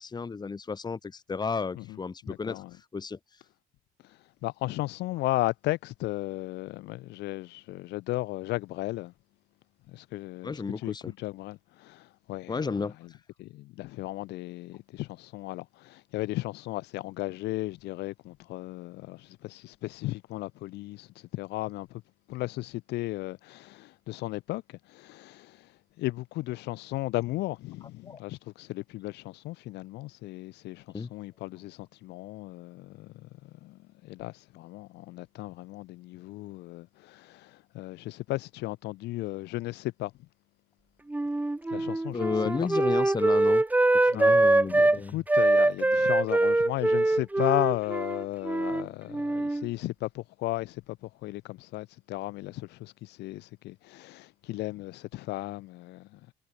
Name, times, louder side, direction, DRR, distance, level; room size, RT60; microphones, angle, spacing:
voice 1, 0.0-3.2 10.4-11.1 12.5-13.0 28.0-28.2 30.9-31.1 42.1-43.6 44.0-45.2, left 5 dB, 25° left, 2.0 m, -32 dB
voice 2, 2.2-2.8 4.0-9.1 9.9-12.7 13.0-13.1 13.4-22.0 22.3-25.7 26.0-40.1 41.7-42.3 44.1-44.4 44.7-56.2, left 18 dB, 85° left, 4.6 m, -35 dB
Wind instrument woodwind instrument, 41.1-45.0 45.3-48.9 49.1-49.7, right 2 dB, 10° right, 1.1 m, -23 dB
cardioid pair, 110°, 17 cm